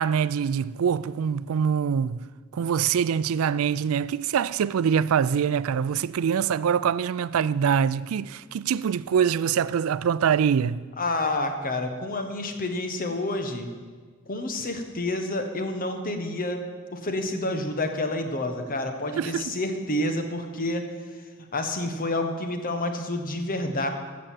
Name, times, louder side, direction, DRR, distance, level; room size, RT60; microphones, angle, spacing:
voice 1, 0.0-2.2 2.5-10.8 19.2-19.6, right 7 dB, 85° right, 0.4 m, -24 dB
voice 2, 11.0-13.7 14.3-16.6 16.9-20.8 21.5-23.9, left 2 dB, 45° left, 1.3 m, -29 dB
13.5 x 6.7 x 7.5 m
head